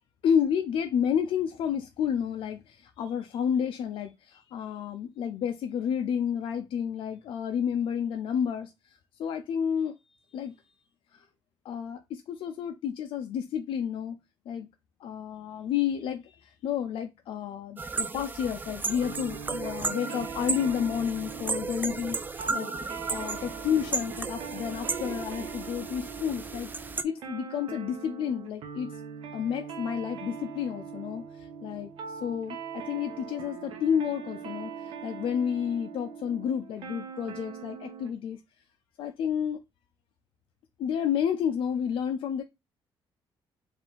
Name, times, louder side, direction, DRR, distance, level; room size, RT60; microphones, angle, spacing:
voice 1, 0.2-10.0 10.3-10.5 11.1-11.3 11.6-14.2 14.5-14.7 15.0-22.7 23.1-26.7 27.0-28.9 29.3-38.4 39.0-39.6 40.8-42.4, left 8 dB, 65° left, 0.4 m, -30 dB
sound 1, 17.8-27.0, right 4 dB, 20° right, 0.3 m, -34 dB
sound 2, 19.0-38.1, right 6 dB, 70° right, 0.9 m, -41 dB
4.2 x 2.5 x 3.6 m
cardioid pair, 130°, 10 cm